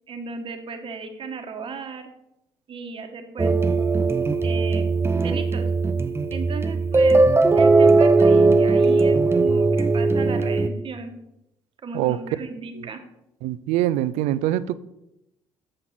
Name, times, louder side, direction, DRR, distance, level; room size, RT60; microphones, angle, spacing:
voice 1, 0.1-2.1 2.7-3.7 4.4-5.7 6.3-7.2 7.5-11.1 11.8-13.0, right 4 dB, 50° right, 6 dB, 1.3 m, -35 dB
sound 1, 3.4-10.7, right 3 dB, 20° right, 0.6 m, -18 dB
voice 2, 13.4-14.7, right 14 dB, 80° right, 16 dB, 0.4 m, -23 dB
7.4 x 6.5 x 4.2 m, 0.84 s
supercardioid pair, 70°, 12 cm